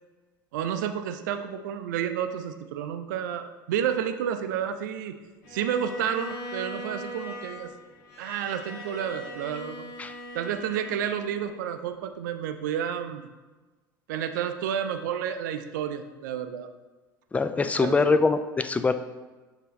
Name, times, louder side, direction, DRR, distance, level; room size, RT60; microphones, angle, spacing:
voice 1, 0.5-5.2 5.5-7.7 8.2-9.8 10.3-13.3 14.1-16.7 17.8-18.0, right 9 dB, 60° right, 9 dB, 0.5 m, -30 dB
Bowed string instrument, 5.4-11.7, equal, 70° left, 1.9 m, -40 dB
voice 2, 17.3-18.9, left 4 dB, 15° left, 10 dB, 0.4 m, -23 dB
6.7 x 4.9 x 3.1 m, 1.2 s
figure-of-eight pair, 75°, 11 cm